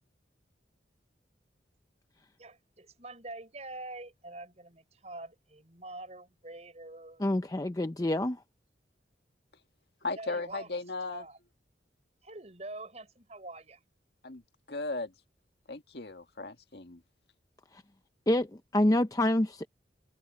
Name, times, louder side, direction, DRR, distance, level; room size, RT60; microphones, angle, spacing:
voice 1, 2.4-7.2 10.1-10.8 11.1-11.4 12.2-13.8, right 2 dB, 40° right, 5.1 m, -45 dB
voice 2, 7.2-8.4 18.3-19.7, left 1 dB, 20° left, 0.6 m, -27 dB
voice 3, 10.0-11.2 14.2-14.4 14.7-15.1 15.7-17.0, left 3 dB, 65° left, 1.9 m, -36 dB
head